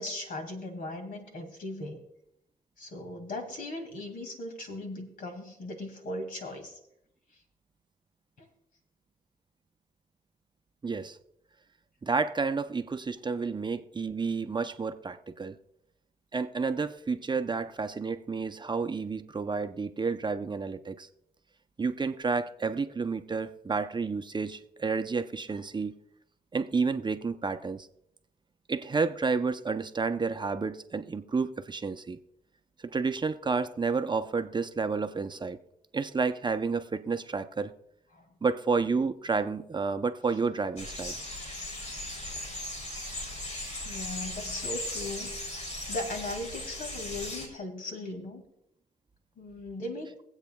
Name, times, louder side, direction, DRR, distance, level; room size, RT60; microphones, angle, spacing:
voice 1, 0.0-2.0 2.8-6.8 8.4-8.5 38.1-38.2 43.8-48.4 49.4-50.1, left 2 dB, 70° left, 2.3 m, -38 dB
voice 2, 10.8-11.2 12.0-15.6 16.3-21.1 21.8-25.9 26.5-27.9 28.7-32.2 32.8-35.6 35.9-37.7 38.4-41.2, right 4 dB, 30° right, 0.7 m, -30 dB
sound 1, 40.8-47.5, left 1 dB, 50° left, 3.2 m, -37 dB
23.5 x 8.1 x 2.3 m
cardioid pair, 65°, 15 cm